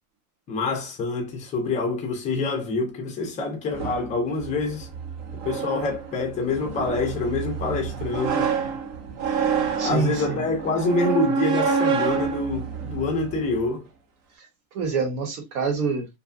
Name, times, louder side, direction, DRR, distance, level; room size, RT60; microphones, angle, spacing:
voice 1, 0.5-4.9 5.4-8.5 9.8-13.9, left 3 dB, 20° left, 0.4 m, -26 dB
sound 1, 3.7-13.7, right 6 dB, 50° right, 0.7 m, -28 dB
voice 2, 9.8-10.4 14.4-14.5 14.7-16.1, right 5 dB, 65° right, 1.2 m, -26 dB
2.6 x 2.2 x 2.4 m
supercardioid pair, 155°, 44 cm